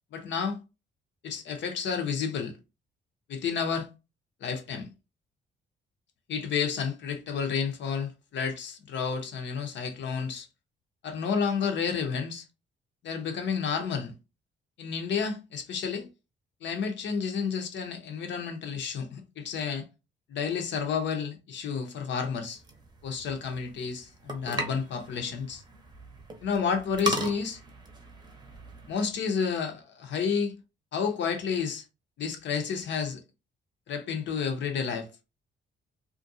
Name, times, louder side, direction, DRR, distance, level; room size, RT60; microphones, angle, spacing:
voice 1, 0.1-0.6 1.2-2.5 3.3-3.9 4.4-4.9 6.3-10.5 11.0-12.4 13.0-14.1 14.8-16.1 16.6-19.8 20.3-22.6 23.0-25.6 26.4-27.6 28.9-30.5 30.9-31.8 32.2-33.2 33.9-35.1, left 6 dB, 65° left, 0.7 m, -30 dB
sound 1, 22.6-29.0, right 1 dB, 20° right, 0.7 m, -37 dB
2.4 x 2.2 x 2.6 m
cardioid pair, 90°, 20 cm